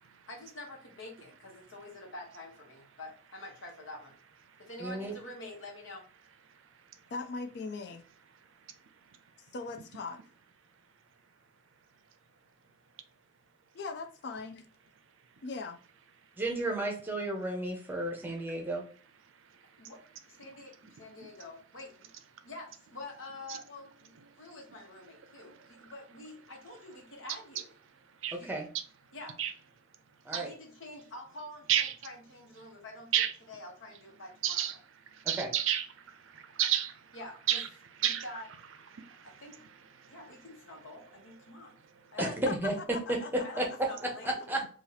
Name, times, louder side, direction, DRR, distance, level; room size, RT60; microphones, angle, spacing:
voice 1, 0.3-4.2 4.6-6.1 19.8-20.0 20.3-22.1 22.4-27.7 28.3-28.5 29.1-29.4 30.3-34.7 37.1-37.6 38.0-38.5 39.2-39.6 40.1-41.8 42.1-42.3 43.4-44.5, left 2 dB, 80° left, 1.1 m, -47 dB
voice 2, 4.8-5.1 16.4-18.8 28.4-28.7 30.2-30.5 35.4-35.5 42.2-44.6, right 1 dB, 10° right, 0.7 m, -33 dB
voice 3, 7.1-8.0 9.5-10.2 13.7-14.7 15.4-15.8 42.2-42.5 42.9-43.5 44.0-44.1, left 4 dB, 55° left, 0.4 m, -39 dB
voice 4, 34.4-34.8 35.3-35.9 36.3-36.9 37.5-37.7 38.0-38.3 38.9-39.4, right 10 dB, 80° right, 0.5 m, -30 dB
2.8 x 2.4 x 3.9 m
head